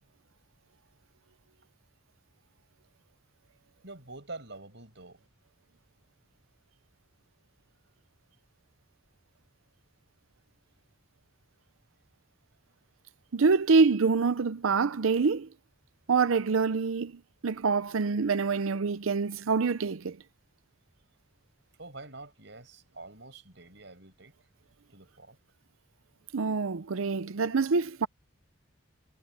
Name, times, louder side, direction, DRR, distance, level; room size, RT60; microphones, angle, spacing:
voice 1, 3.8-5.3 10.4-10.8 21.8-24.3 24.9-25.4, right 2 dB, 60° right, 7.2 m, -47 dB
voice 2, 13.3-15.5 16.1-17.1 17.4-20.2 26.3-28.1, right 4 dB, 85° right, 0.6 m, -26 dB
head